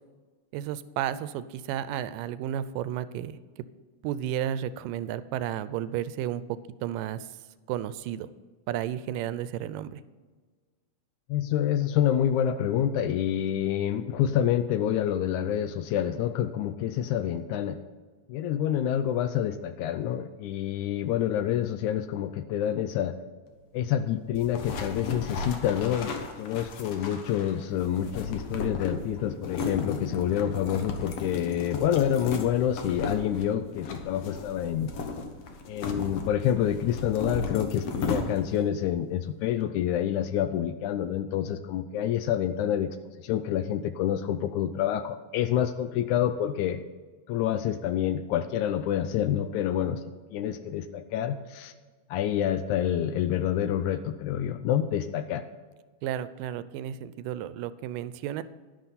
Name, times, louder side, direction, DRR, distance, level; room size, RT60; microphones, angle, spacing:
voice 1, 0.5-3.4 4.0-7.3 7.7-8.3 8.7-10.0 56.0-58.4, right 11 dB, 90° right, 15 dB, 2.2 m, -32 dB
voice 2, 11.3-17.8 18.3-23.2 23.7-34.9 35.7-43.0 43.2-46.8 47.3-50.0 50.3-51.7 52.1-55.4, left 10 dB, 80° left, 11 dB, 1.8 m, -27 dB
sound 1, 24.3-38.7, left 4 dB, 60° left, 2.0 m, -35 dB
11.0 x 11.0 x 4.1 m, 1.4 s
omnidirectional pair, 3.8 m